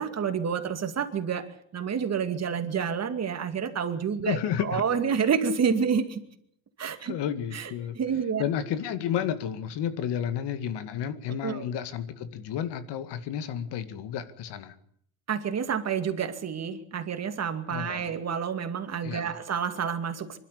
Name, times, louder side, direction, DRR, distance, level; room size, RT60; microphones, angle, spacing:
voice 1, 0.0-6.2 6.8-7.2 7.5-7.7 8.0-8.4 11.4-11.7 15.3-20.4, right 7 dB, 35° right, 8 dB, 2.3 m, -29 dB
voice 2, 4.2-4.8 7.0-8.0 8.4-14.7 17.7-18.1 19.0-19.4, left 9 dB, 65° left, 11 dB, 2.2 m, -31 dB
24.5 x 12.5 x 10.0 m, 0.67 s
cardioid pair, 115°, 44 cm